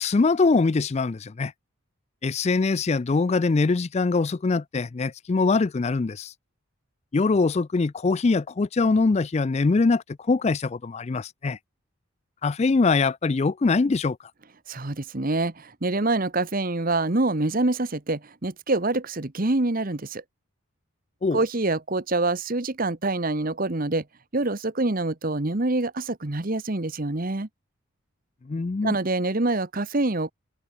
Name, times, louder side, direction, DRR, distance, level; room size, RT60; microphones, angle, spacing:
voice 1, 0.0-1.5 2.2-6.3 7.1-11.6 12.4-14.2 21.2-21.4 28.5-28.9, left 3 dB, 30° left, 0.4 m, -23 dB
voice 2, 14.7-20.2 21.3-24.0 24.3-27.5 28.8-30.3, right 2 dB, 40° right, 1.2 m, -26 dB
open air
head